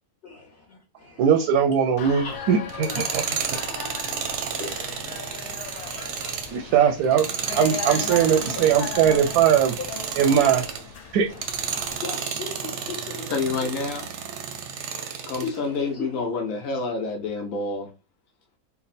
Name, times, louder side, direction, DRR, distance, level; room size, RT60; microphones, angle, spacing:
voice 1, 1.2-3.2 6.5-7.3 7.5-9.7 10.2-10.6 11.1-11.3, right 8 dB, 85° right, 1.1 m, -20 dB
sound 1, 2.0-12.0, left 7 dB, 90° left, 1.2 m, -37 dB
Tools, 2.7-10.9 11.3-15.5, right 7 dB, 65° right, 0.8 m, -32 dB
voice 2, 4.2-6.7 7.5-7.6 9.8-9.9 10.3-10.5 12.0-13.9 15.4-16.2, left 4 dB, 45° left, 1.1 m, -38 dB
voice 3, 13.3-14.1 15.2-17.9, left 4 dB, 65° left, 1.1 m, -28 dB
3.4 x 2.1 x 4.0 m
omnidirectional pair, 1.6 m